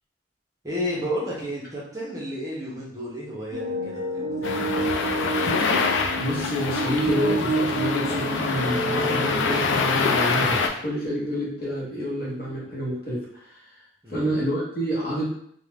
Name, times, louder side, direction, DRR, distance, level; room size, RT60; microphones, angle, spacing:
voice 1, 0.6-5.3 14.0-14.4, equal, 15° right, -6 dB, 0.6 m, -32 dB
sound 1, 3.5-9.6, right 2 dB, 75° right, 0.6 m, -28 dB
sound 2, 4.4-10.7, left 4 dB, 70° left, 0.3 m, -25 dB
voice 2, 6.2-13.8 14.1-15.3, equal, 50° left, -5 dB, 0.9 m, -28 dB
2.4 x 2.1 x 3.2 m, 0.67 s
head